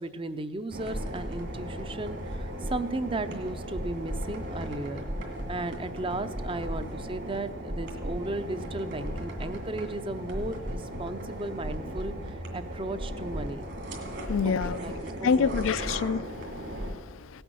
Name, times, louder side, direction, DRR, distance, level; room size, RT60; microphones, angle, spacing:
voice 1, 0.0-5.1 5.5-13.7 14.4-15.8, right 2 dB, 25° right, 0.6 m, -35 dB
sound 1, 0.7-16.9, equal, 60° right, 2.4 m, -36 dB
voice 2, 14.3-14.8 15.2-17.4, left 6 dB, 80° left, 0.4 m, -28 dB
17.0 x 7.9 x 6.2 m
head